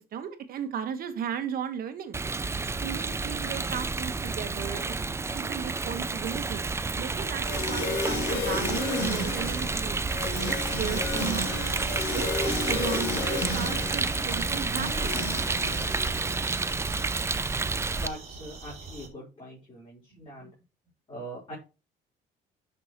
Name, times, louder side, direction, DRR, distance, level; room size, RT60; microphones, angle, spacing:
voice 1, 0.1-2.2 2.8-4.9 5.3-6.6 7.0-10.0 10.5-11.5 12.1-15.1, right 8 dB, 60° right, 8 dB, 1.6 m, -35 dB
Rain, 2.1-18.1, right 3 dB, 15° right, 0.5 m, -30 dB
sound 1, 7.4-16.5, left 3 dB, 75° left, 3.2 m, -33 dB
sound 2, 10.3-19.1, right 4 dB, 40° right, 2.6 m, -45 dB
voice 2, 17.9-20.5 21.1-21.5, right 1 dB, 35° left, -6 dB, 4.6 m, -42 dB
11.0 x 6.1 x 3.2 m, 0.30 s
cardioid pair, 110°, 17 cm